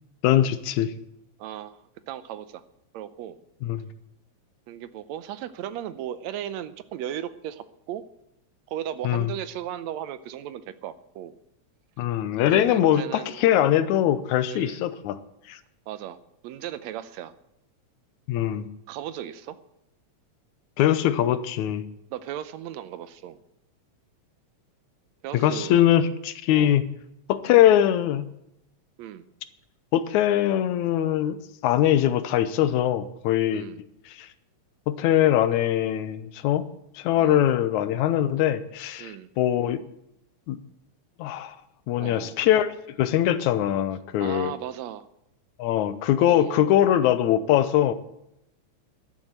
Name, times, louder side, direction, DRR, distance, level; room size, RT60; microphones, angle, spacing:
voice 1, 0.2-0.9 3.6-3.9 9.0-9.3 12.0-15.2 15.5-15.6 18.3-18.7 20.8-21.9 25.3-26.8 27.3-28.3 29.9-31.4 31.6-33.7 34.1-34.3 34.9-36.7 37.0-39.8 40.5-40.6 41.2-41.6 41.9-42.7 43.0-44.5 45.6-47.9, left 11 dB, 85° left, 14 dB, 2.1 m, -22 dB
voice 2, 1.4-1.8 2.1-2.6 2.9-3.4 4.7-8.0 8.7-11.3 12.5-13.5 14.5-14.8 15.9-16.2 16.4-17.3 18.9-19.6 22.1-23.4 25.2-25.7 26.5-26.8 29.0-29.3 33.5-33.8 37.2-37.4 39.0-39.3 42.0-42.4 44.2-45.1 46.2-46.6, right 11 dB, 75° right, 14 dB, 1.8 m, -36 dB
12.5 x 7.4 x 8.9 m, 0.83 s
omnidirectional pair, 3.3 m